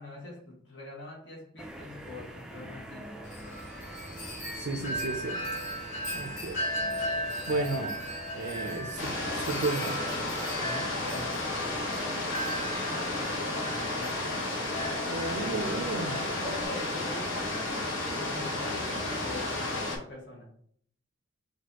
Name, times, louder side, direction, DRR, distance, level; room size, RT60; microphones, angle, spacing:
voice 1, 0.0-3.3 5.9-6.6 7.4-7.7 8.6-9.0 10.5-11.9 12.8-15.4 16.3-20.5, left 2 dB, 60° left, -2 dB, 1.6 m, -44 dB
sound 1, 1.6-20.0, right 1 dB, 5° right, 0.4 m, -44 dB
Wind chime, 3.2-16.7, equal, 35° left, 1.3 m, -37 dB
voice 2, 4.5-5.6 6.1-6.6 7.5-8.0 8.3-10.0 15.1-16.2, right 3 dB, 60° right, 4 dB, 0.4 m, -33 dB
sound 2, 9.0-20.0, left 2 dB, 80° left, 1.2 m, -33 dB
6.1 x 2.6 x 2.9 m, 0.62 s
head